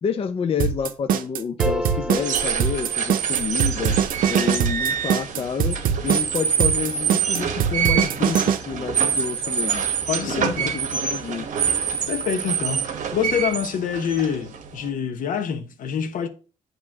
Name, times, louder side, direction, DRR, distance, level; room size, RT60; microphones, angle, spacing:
voice 1, 0.0-4.0 4.3-5.8 6.0-9.8 10.3-11.5, left 6 dB, 40° left, 0.6 m, -29 dB
sound 1, 0.6-8.6, right 8 dB, 75° right, 0.7 m, -22 dB
sound 2, 1.6-3.9, equal, 5° right, 0.6 m, -32 dB
sound 3, 2.1-14.9, right 7 dB, 60° right, 1.1 m, -26 dB
voice 2, 10.1-10.8 12.1-16.3, left 8 dB, 70° left, 1.1 m, -26 dB
7.6 x 3.1 x 6.0 m
cardioid pair, 110°, 15 cm